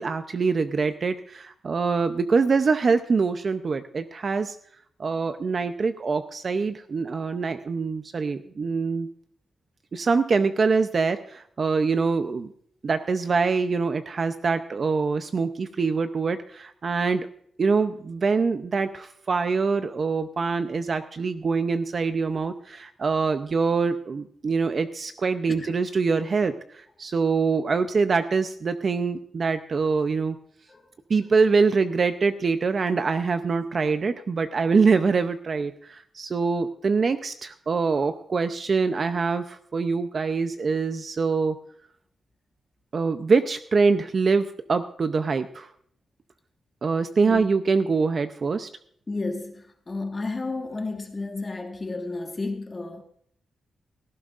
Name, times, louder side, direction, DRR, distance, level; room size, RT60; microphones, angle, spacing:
voice 1, 0.0-4.6 5.0-9.1 9.9-12.5 12.8-17.3 17.6-30.4 31.1-41.6 42.9-45.7 46.8-48.7, right 4 dB, 40° right, 0.6 m, -24 dB
voice 2, 49.1-53.0, left 3 dB, 25° left, 1.6 m, -32 dB
17.0 x 15.0 x 2.5 m
wide cardioid pair, 130°, 0 cm